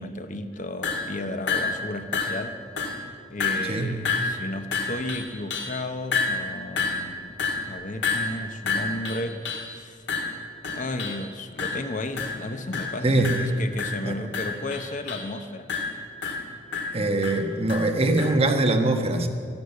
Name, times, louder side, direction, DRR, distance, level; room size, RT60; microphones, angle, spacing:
voice 1, 0.0-2.6 3.3-7.4 7.7-10.0 10.7-15.7, left 2 dB, 45° left, 8 dB, 0.8 m, -34 dB
sound 1, 0.8-1.1 1.5-1.9 2.1-2.5 2.8-3.1 3.4-3.8 4.0-5.8 6.1-9.7 10.1-11.3 11.6-11.9 12.2-12.4 12.7-13.0 13.2-15.3 15.7-18.4, left 4 dB, 90° left, 1.9 m, -29 dB
voice 2, 13.0-13.4 14.0-14.1 16.9-19.3, right 2 dB, 35° right, 4 dB, 1.4 m, -22 dB
13.5 x 11.5 x 8.1 m, 2.1 s
head